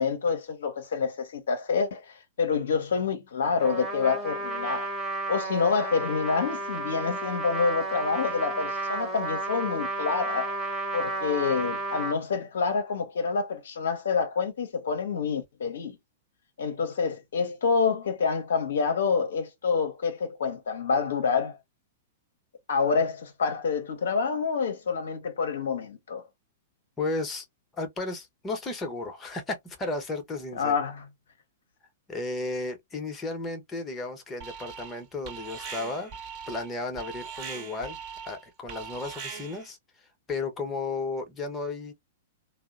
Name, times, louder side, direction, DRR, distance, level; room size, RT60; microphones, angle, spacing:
voice 1, 0.0-4.9 5.3-10.6 10.9-16.0 16.6-21.6 22.7-26.2 30.6-31.0, left 5 dB, 70° left, 0.7 m, -27 dB
Trumpet, 3.6-12.2, right 2 dB, 5° right, 1.1 m, -32 dB
voice 2, 27.0-27.5 27.7-30.8 32.1-36.1 36.5-38.0 38.2-39.8 40.3-41.9, left 3 dB, 20° left, 0.9 m, -34 dB
Alarm, 34.4-35.0 35.2-39.7, right 6 dB, 40° right, 1.0 m, -41 dB
2.7 x 2.0 x 2.4 m
figure-of-eight pair, 105°, 0 cm